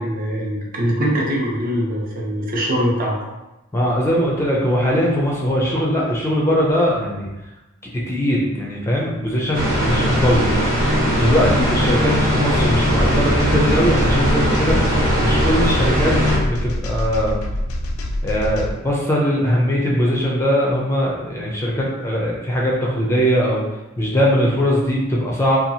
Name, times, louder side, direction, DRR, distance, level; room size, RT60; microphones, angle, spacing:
voice 1, 0.0-3.2, equal, 45° right, -2 dB, 0.6 m, -22 dB
voice 2, 3.7-7.3 8.1-10.5 11.2-14.7 15.2-17.4 18.2-23.6 24.0-25.6, equal, 10° left, -4 dB, 0.4 m, -20 dB
sound 1, 9.5-16.4, equal, 80° right, 1.0 m, -19 dB
sound 2, 12.5-18.7, left 1 dB, 85° left, 0.3 m, -25 dB
2.8 x 2.3 x 2.7 m, 1.0 s
head